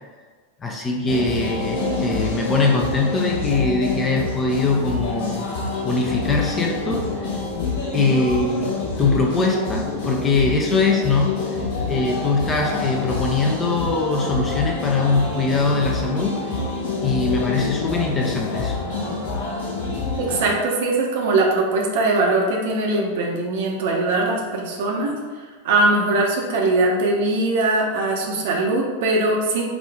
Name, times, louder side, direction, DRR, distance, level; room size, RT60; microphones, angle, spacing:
voice 1, 0.6-5.5 5.8-7.3 7.9-11.5 11.8-16.4 17.0-18.8, left 3 dB, 20° left, 0 dB, 0.6 m, -22 dB
sound 1, 1.0-20.5, left 3 dB, 50° left, 0.8 m, -27 dB
voice 2, 20.2-25.1 25.6-29.6, right 2 dB, 55° right, -1 dB, 0.8 m, -21 dB
4.9 x 2.5 x 3.5 m, 1.5 s
figure-of-eight pair, 90°, 0 cm